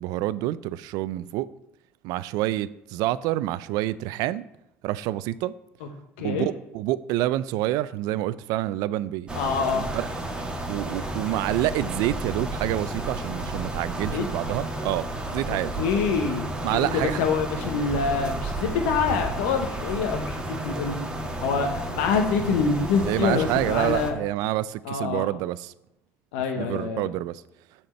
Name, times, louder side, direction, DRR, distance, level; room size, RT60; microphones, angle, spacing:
voice 1, 0.0-1.5 2.0-4.4 4.8-5.5 6.2-10.1 10.7-15.1 15.3-15.7 16.6-17.2 23.1-25.7 26.6-27.4, right 14 dB, 70° right, 0.4 m, -27 dB
sound 1, 9.3-24.1, right 1 dB, 15° right, 1.7 m, -32 dB
voice 2, 9.4-9.9 14.1-14.2 15.8-16.5 16.9-21.0 21.4-24.2 24.8-25.3 26.3-27.1, left 5 dB, 80° left, 1.0 m, -25 dB
7.7 x 4.4 x 6.5 m
hypercardioid pair, 65°, 7 cm